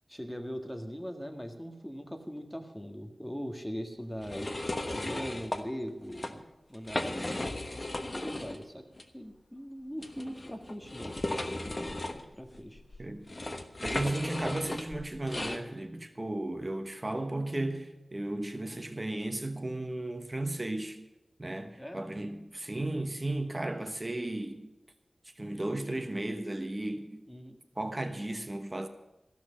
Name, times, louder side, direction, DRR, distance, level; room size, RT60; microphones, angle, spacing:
voice 1, 0.1-4.5 4.9-7.5 8.1-8.8 9.1-11.2 11.4-13.0 21.8-22.1 27.3-27.6, equal, 5° left, 1.7 m, -41 dB
sound 1, 4.2-5.6 6.0-6.3 6.7-8.6 8.9-9.0 10.0-15.6, left 1 dB, 35° left, 1.2 m, -36 dB
voice 2, 13.8-21.0 21.4-24.7 25.4-27.2 27.8-28.9, right 1 dB, 30° right, 1.2 m, -35 dB
15.0 x 6.2 x 10.0 m
wide cardioid pair, 60°, 0 cm